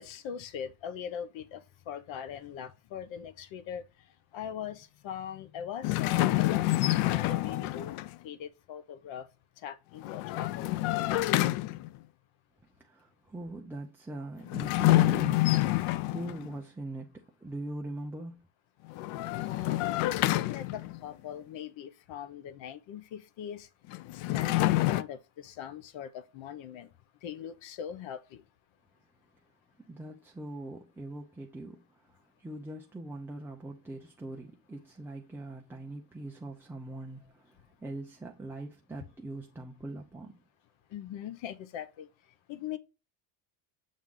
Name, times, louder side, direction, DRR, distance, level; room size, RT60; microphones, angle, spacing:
voice 1, 0.0-3.8 4.3-8.0 8.2-9.3 9.6-11.0 19.3-23.7 24.1-26.9 27.2-28.4 40.9-42.1 42.5-42.8, left 8 dB, 65° left, 1.0 m, -41 dB
sound 1, 5.8-8.1 10.0-12.0 14.5-16.5 18.9-21.1 23.9-25.0, left 17 dB, 90° left, 0.6 m, -27 dB
voice 2, 12.8-18.4 29.9-32.0 32.4-37.5 37.8-40.4, right 1 dB, 5° right, 0.5 m, -42 dB
7.4 x 3.6 x 3.7 m
cardioid pair, 155°, 50 cm